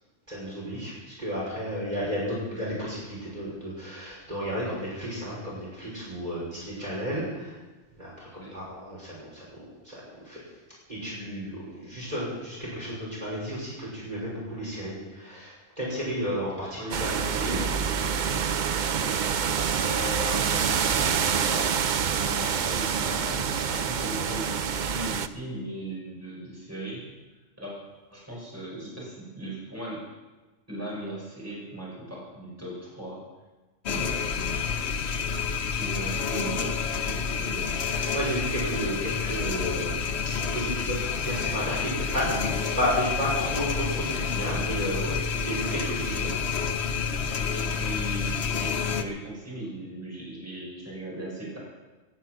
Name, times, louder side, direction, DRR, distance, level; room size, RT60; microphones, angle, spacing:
voice 1, 0.3-7.6 8.0-10.4 10.9-17.6 37.8-40.0 40.4-46.3, equal, 35° right, -6 dB, 6.0 m, -32 dB
sound 1, 16.9-25.3, right 7 dB, 50° right, 0.6 m, -27 dB
voice 2, 19.8-27.2 27.6-27.8 28.1-30.1 30.7-33.2 33.9-34.5 35.8-37.8 46.1-46.4 47.4-51.6, right 1 dB, 10° right, -5 dB, 5.8 m, -38 dB
sound 2, 33.9-49.0, left 6 dB, 60° left, 1.1 m, -29 dB
18.0 x 11.0 x 6.1 m, 1.2 s
omnidirectional pair, 1.3 m